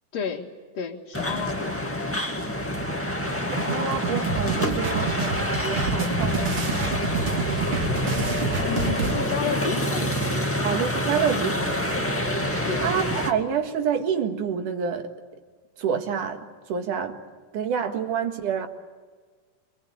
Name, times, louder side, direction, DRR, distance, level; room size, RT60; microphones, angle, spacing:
voice 1, 0.1-1.9 8.6-10.9 12.6-12.9, left 7 dB, 55° left, -4 dB, 2.7 m, -32 dB
sound 1, 1.1-13.3, left 1 dB, 5° left, 1.3 m, -27 dB
voice 2, 3.4-6.6 10.6-12.0 12.8-15.1 15.8-17.2 17.5-18.7, right 7 dB, 75° right, 6 dB, 3.3 m, -28 dB
sound 2, 3.6-9.1, right 5 dB, 45° right, 2.7 m, -28 dB
26.5 x 23.0 x 8.7 m, 1.5 s
omnidirectional pair, 3.7 m